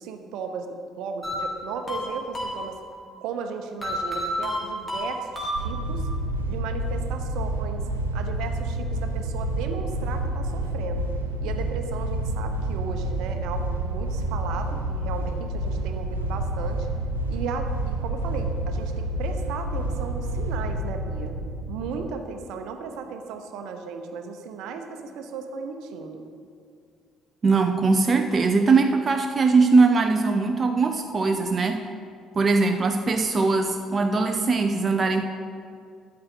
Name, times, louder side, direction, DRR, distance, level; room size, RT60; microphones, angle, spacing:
voice 1, 0.0-2.8 3.2-6.1 6.4-7.9 8.1-11.1 11.4-16.9 17.3-21.4 21.7-26.3, right 5 dB, 60° right, 6 dB, 1.0 m, -35 dB
sound 1, 1.2-3.0 3.8-6.1, equal, 20° left, 3.1 m, -31 dB
sound 2, 5.5-22.1, right 1 dB, 80° right, 0.7 m, -29 dB
voice 2, 27.4-31.8 32.3-35.2, right 4 dB, 35° right, 5 dB, 0.7 m, -21 dB
13.0 x 9.7 x 4.0 m, 2.3 s
figure-of-eight pair, 50°, 0 cm